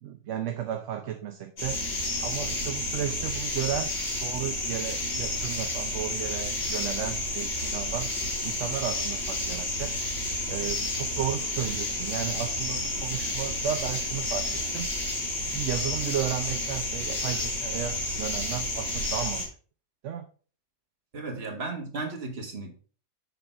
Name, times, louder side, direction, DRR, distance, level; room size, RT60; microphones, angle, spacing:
voice 1, 0.0-1.8 2.2-8.1 8.4-9.9 10.5-19.4 20.0-20.3 21.4-21.6, right 10 dB, 65° right, 5 dB, 0.9 m, -34 dB
sound 1, 1.6-19.5, left 2 dB, 75° left, 2.5 m, -31 dB
voice 2, 21.1-22.7, right 3 dB, 45° right, 2 dB, 1.6 m, -35 dB
6.9 x 3.8 x 4.3 m, 0.40 s
omnidirectional pair, 1.5 m